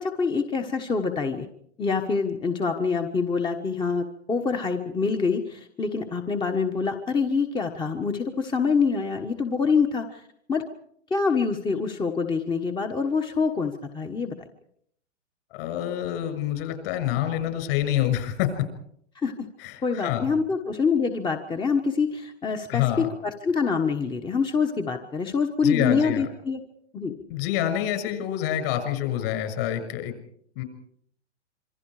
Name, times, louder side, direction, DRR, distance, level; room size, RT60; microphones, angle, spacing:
voice 1, 0.0-1.4 1.8-10.2 10.5-10.6 11.1-14.3 19.1-19.5 19.8-26.6 26.9-27.1, left 5 dB, 10° left, 5 dB, 1.3 m, -25 dB
voice 2, 15.5-18.5 19.6-20.3 22.7-23.1 25.6-26.3 27.3-30.2 30.6-30.7, left 11 dB, 50° left, 8 dB, 6.7 m, -27 dB
27.0 x 24.5 x 4.9 m, 0.69 s
hypercardioid pair, 135°, 37 cm